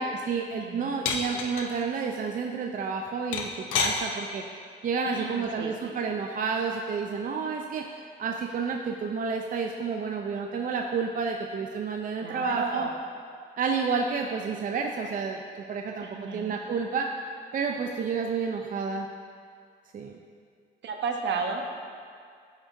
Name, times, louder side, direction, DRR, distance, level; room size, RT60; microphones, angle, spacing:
voice 1, 0.0-4.5 4.8-7.9 8.2-12.9 13.6-17.1 17.5-19.1 19.9-20.2, right 5 dB, 45° right, 2 dB, 0.4 m, -30 dB
voice 2, 0.6-1.0 5.0-6.0 12.2-13.0 16.0-16.5 20.8-21.6, right 5 dB, 65° right, 3 dB, 0.8 m, -33 dB
sound 1, 1.1-1.7 3.3-4.0 5.5-5.8, left 6 dB, 85° left, 0.7 m, -28 dB
11.0 x 5.1 x 2.5 m, 2.2 s
cardioid pair, 90°, 20 cm